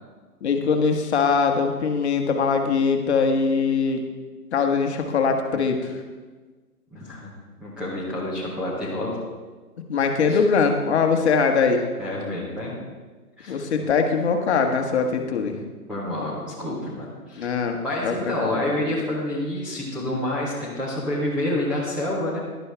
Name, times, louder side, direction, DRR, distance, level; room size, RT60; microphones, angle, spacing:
voice 1, 0.4-4.0 4.5-6.0 9.9-11.9 13.5-15.6 17.4-17.8 18.0-18.7, left 5 dB, 45° left, 4 dB, 1.4 m, -22 dB
voice 2, 6.9-7.3 7.6-9.1 10.3-10.4 12.0-12.7 13.4-13.6 15.9-17.5 17.8-22.4, left 1 dB, ahead, -9 dB, 0.7 m, -28 dB
11.5 x 11.0 x 3.4 m, 1.4 s
hypercardioid pair, 145°, 46 cm